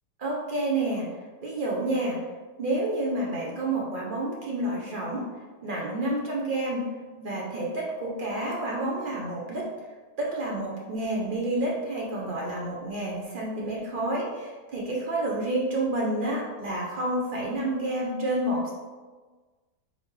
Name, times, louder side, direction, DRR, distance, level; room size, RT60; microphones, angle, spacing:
voice 1, 0.2-1.1 1.4-2.3 2.6-5.3 5.6-6.9 7.2-9.7 10.2-18.7, right 1 dB, 75° right, -3 dB, 0.4 m, -29 dB
4.0 x 3.6 x 3.1 m, 1.3 s
omnidirectional pair, 1.7 m